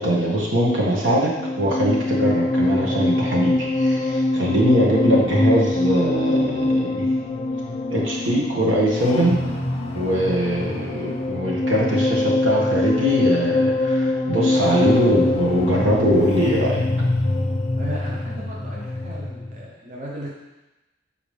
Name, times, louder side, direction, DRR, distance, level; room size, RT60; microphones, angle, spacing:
voice 1, 0.0-7.1 7.9-9.4 9.9-16.9, equal, 80° right, -4 dB, 1.6 m, -21 dB
sound 1, 1.1-19.6, left 2 dB, 35° left, 0.6 m, -23 dB
voice 2, 17.8-20.3, equal, 40° right, -4 dB, 1.0 m, -35 dB
7.1 x 4.9 x 3.4 m, 1.0 s
head